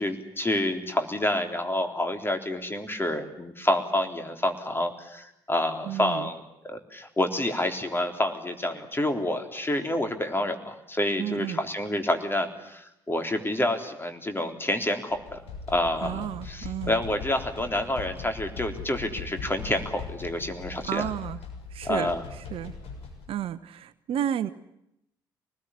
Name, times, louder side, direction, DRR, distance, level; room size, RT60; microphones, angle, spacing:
voice 1, 0.0-15.4 15.7-21.1 21.8-22.2, left 1 dB, 20° left, 6 dB, 3.7 m, -28 dB
voice 2, 5.8-6.3 11.2-11.6 16.0-17.0 20.9-21.4 21.7-22.1 22.5-22.7 23.3-24.5, right 10 dB, 55° right, 14 dB, 1.0 m, -31 dB
sound 1, 15.1-23.3, left 5 dB, 60° left, 6.6 m, -40 dB
25.0 x 20.0 x 9.9 m, 0.84 s
figure-of-eight pair, 50°, 12 cm